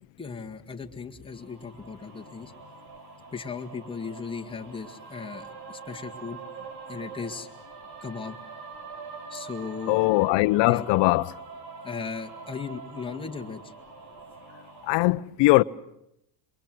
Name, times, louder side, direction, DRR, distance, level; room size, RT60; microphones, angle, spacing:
voice 1, 0.2-2.5 3.3-6.4 6.9-7.5 8.0-8.4 9.3-10.0 10.6-10.9 11.8-13.6, left 5 dB, 10° left, 1.9 m, -37 dB
sound 1, 1.3-14.9, right 5 dB, 60° right, 5.5 m, -44 dB
voice 2, 9.9-11.3 14.9-15.6, left 20 dB, 70° left, 0.9 m, -21 dB
27.5 x 23.5 x 7.8 m
cardioid pair, 135°, 45 cm